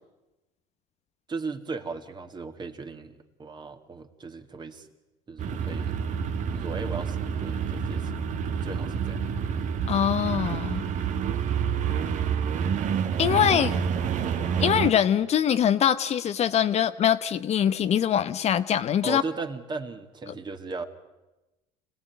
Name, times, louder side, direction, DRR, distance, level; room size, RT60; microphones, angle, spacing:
voice 1, 1.3-4.9 5.3-6.0 6.5-8.3 8.6-9.2 19.0-20.8, right 4 dB, 30° right, 7 dB, 2.2 m, -37 dB
sound 1, 5.4-14.9, right 7 dB, 55° right, 1.5 m, -28 dB
voice 2, 9.9-10.8 13.2-13.7 14.4-19.2, left 9 dB, 45° left, 11 dB, 1.0 m, -23 dB
25.5 x 17.5 x 9.3 m, 1.0 s
supercardioid pair, 90°, 15 cm